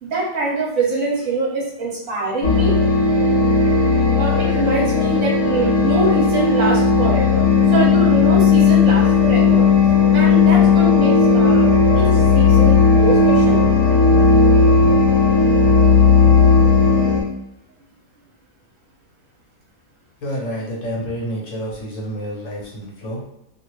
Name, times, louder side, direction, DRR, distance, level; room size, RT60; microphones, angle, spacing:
voice 1, 0.0-2.8 4.1-7.5 7.7-9.7 10.1-11.7 11.9-13.6 16.3-16.5, right 2 dB, 65° right, -3 dB, 1.4 m, -23 dB
sound 1, 2.4-17.2, left 5 dB, 30° left, 0.5 m, -14 dB
voice 2, 20.2-23.2, equal, 60° left, -3 dB, 1.1 m, -28 dB
2.8 x 2.7 x 3.1 m, 0.80 s
omnidirectional pair, 1.6 m